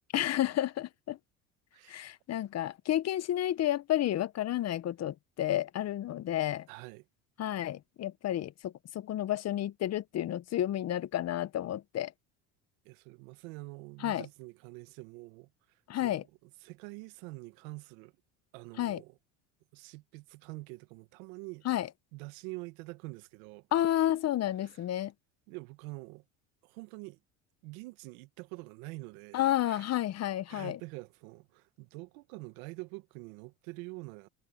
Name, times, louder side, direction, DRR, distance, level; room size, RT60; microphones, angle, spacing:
voice 1, 0.1-1.2 1.9-6.7 7.4-12.1 14.0-14.3 15.9-16.2 18.8-19.0 21.7-21.9 23.7-25.1 29.3-30.8, left 12 dB, 40° left, 0.8 m, -31 dB
voice 2, 1.7-2.1 6.7-7.0 12.8-15.5 16.0-18.1 18.5-19.2 19.7-21.7 22.1-23.7 24.6-24.8 25.5-26.2 26.6-27.2 27.6-29.9 30.5-34.3, right 24 dB, 80° right, 1.5 m, -46 dB
supercardioid pair, 100°, 41 cm